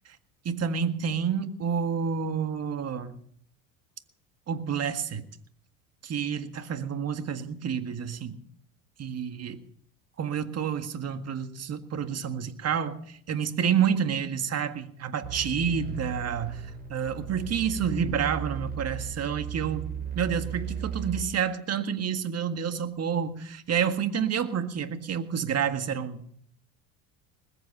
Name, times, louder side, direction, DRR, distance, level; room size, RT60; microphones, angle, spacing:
voice 1, 0.5-3.2 4.5-5.2 6.0-8.4 9.0-9.6 10.2-16.6 16.9-26.3, right 7 dB, 40° right, 9 dB, 1.8 m, -29 dB
sound 1, 15.2-21.2, right 6 dB, 20° right, 6.0 m, -36 dB
20.5 x 8.4 x 6.6 m, 0.64 s
hypercardioid pair, 75°, 40 cm